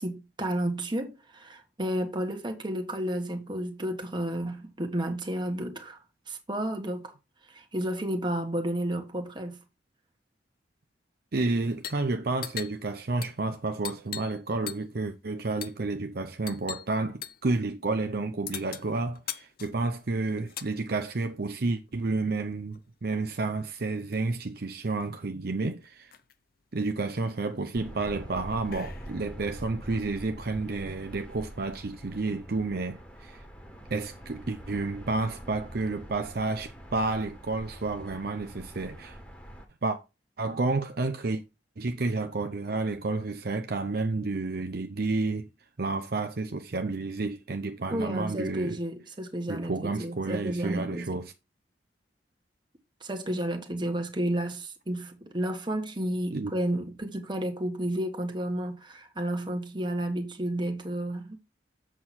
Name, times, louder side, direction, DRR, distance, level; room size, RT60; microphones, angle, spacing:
voice 1, 0.0-6.0 6.3-7.1 7.5-9.6 47.9-51.2 53.0-61.4, right 1 dB, 25° right, 1.5 m, -32 dB
voice 2, 11.3-26.1 26.7-33.4 33.9-39.2 39.8-40.0 40.4-41.4 41.8-45.5 45.8-48.8 49.5-51.3 56.3-56.5, right 3 dB, 60° right, 0.7 m, -30 dB
sound 1, 11.7-12.1 12.3-14.4 14.7-15.0 15.6-15.8 16.5-16.9 17.2-17.5 18.5-20.7 21.8-22.9 24.1-24.2 24.4-25.0 25.5-25.6 25.8-26.3 26.9-29.3, left 10 dB, 55° left, 0.7 m, -41 dB
sound 2, 27.7-39.7, equal, 10° left, 1.8 m, -45 dB
7.6 x 6.2 x 4.3 m
head